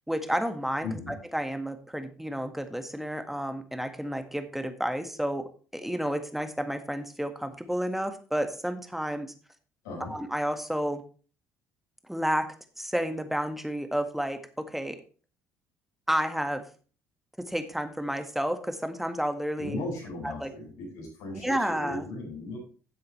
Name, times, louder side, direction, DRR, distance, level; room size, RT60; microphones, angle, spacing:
voice 1, 0.1-9.3 10.1-11.0 12.1-12.5 12.8-15.0 16.1-16.6 17.5-19.8 20.2-20.5 21.4-22.1, equal, 5° right, 7 dB, 1.7 m, -31 dB
voice 2, 0.8-1.1 9.8-10.1 19.6-22.6, left 2 dB, 80° left, -5 dB, 5.5 m, -37 dB
13.0 x 7.7 x 3.3 m, 0.38 s
hypercardioid pair, 55°, 8 cm